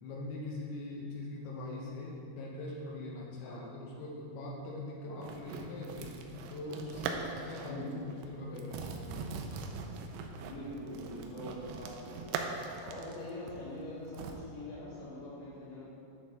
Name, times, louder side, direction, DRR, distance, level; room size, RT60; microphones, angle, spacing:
voice 1, 0.0-6.2 6.5-9.3, left 2 dB, 90° left, -2 dB, 3.2 m, -42 dB
sound 1, 5.2-7.8 8.1-8.3 8.6-14.3, right 5 dB, 85° right, 2.7 m, -41 dB
voice 2, 7.6-8.1 10.4-15.9, left 1 dB, 60° left, -8 dB, 3.4 m, -44 dB
9.3 x 6.3 x 3.5 m, 2.5 s
omnidirectional pair, 5.0 m